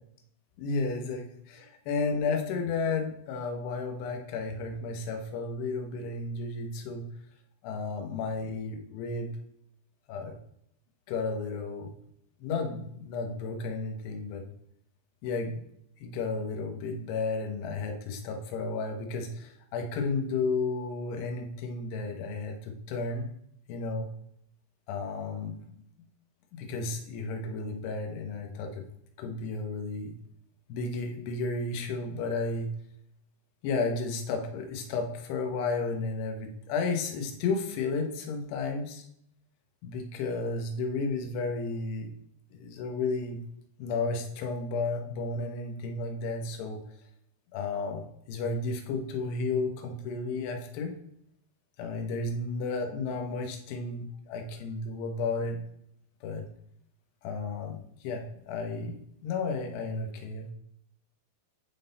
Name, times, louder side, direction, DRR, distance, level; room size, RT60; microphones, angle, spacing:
voice 1, 0.6-7.1 7.6-9.3 10.1-10.3 11.1-11.9 12.4-14.5 15.2-15.6 16.0-23.3 23.7-24.1 24.9-25.6 26.5-28.8 29.2-30.1 30.7-32.7 33.6-39.1 39.8-42.1 42.5-43.4 43.8-46.8 47.5-50.9 51.8-55.6 56.2-56.4 57.2-60.5, left 3 dB, 75° left, 3 dB, 2.7 m, -33 dB
9.8 x 3.7 x 3.9 m, 0.73 s
omnidirectional pair, 5.5 m